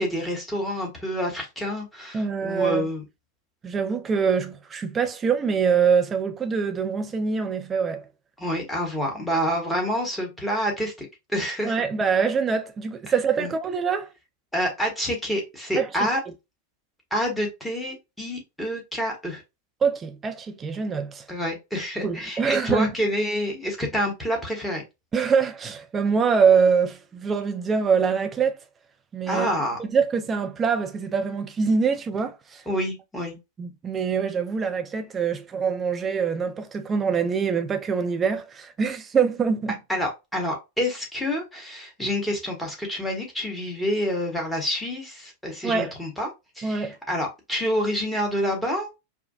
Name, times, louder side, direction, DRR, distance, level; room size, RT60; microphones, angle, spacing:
voice 1, 0.0-3.0 8.4-11.8 13.4-13.5 14.5-16.2 17.1-19.4 21.3-24.8 29.3-29.8 32.7-33.4 39.9-46.3 46.5-48.9, equal, 5° left, 1.4 m, -28 dB
voice 2, 2.1-2.9 3.6-8.1 11.6-14.1 15.8-16.1 19.8-21.3 22.0-22.9 25.1-28.6 29.1-29.5 29.8-32.6 33.6-39.8 45.6-45.9 46.6-47.0, right 6 dB, 20° right, 0.5 m, -24 dB
4.9 x 2.3 x 2.4 m
figure-of-eight pair, 90°, 0 cm